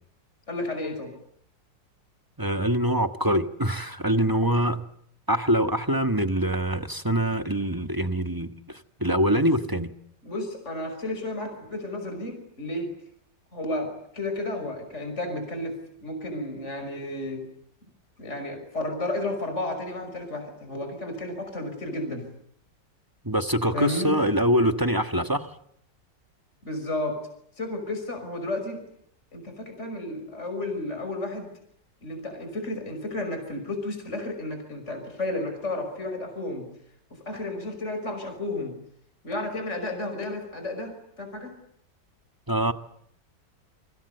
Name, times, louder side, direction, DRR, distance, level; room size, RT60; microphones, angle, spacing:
voice 1, 0.5-1.1 10.2-12.9 13.5-17.5 18.2-22.3 23.7-24.2 26.6-27.2 27.6-28.8 29.3-31.5 32.0-36.7 37.1-38.8 39.2-41.6, left 2 dB, 40° left, 6 dB, 5.9 m, -32 dB
voice 2, 2.4-4.8 5.3-9.9 23.2-25.5 42.5-42.7, equal, 15° right, 8 dB, 1.2 m, -24 dB
28.5 x 25.0 x 8.1 m, 0.70 s
omnidirectional pair, 1.9 m